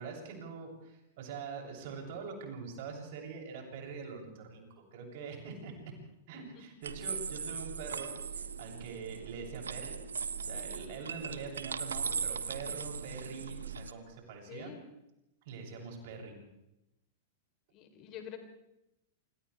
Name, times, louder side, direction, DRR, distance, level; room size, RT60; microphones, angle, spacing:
voice 1, 0.0-5.8 6.3-10.0 10.4-14.7 15.4-16.4, right 5 dB, 50° right, 0 dB, 7.7 m, -44 dB
sound 1, 6.8-13.9, right 6 dB, 75° right, 1.1 m, -39 dB
voice 2, 14.5-14.9 16.3-16.4 17.7-18.4, left 9 dB, 35° left, 5 dB, 3.7 m, -47 dB
28.5 x 26.5 x 3.5 m, 0.88 s
figure-of-eight pair, 100°, 0 cm